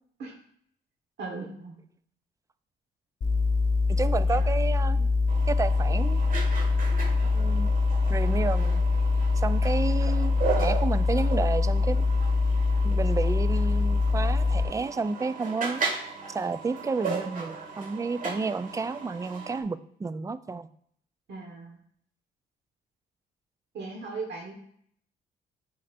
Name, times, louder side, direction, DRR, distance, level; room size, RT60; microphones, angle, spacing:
voice 1, 1.2-1.8 4.3-4.5 21.3-21.8 23.7-24.5, right 3 dB, 65° right, -2 dB, 1.4 m, -38 dB
sound 1, 3.2-14.6, left 3 dB, 40° left, 0.9 m, -24 dB
voice 2, 3.9-5.1 5.5-6.2 7.3-7.7 8.1-8.8 9.4-12.0 12.8-15.8 16.3-20.7, right 4 dB, 15° right, 13 dB, 0.3 m, -31 dB
sound 2, 5.3-19.6, right 5 dB, 45° right, 1.7 m, -36 dB
9.2 x 4.3 x 2.6 m, 0.65 s
cardioid pair, 90°, 20 cm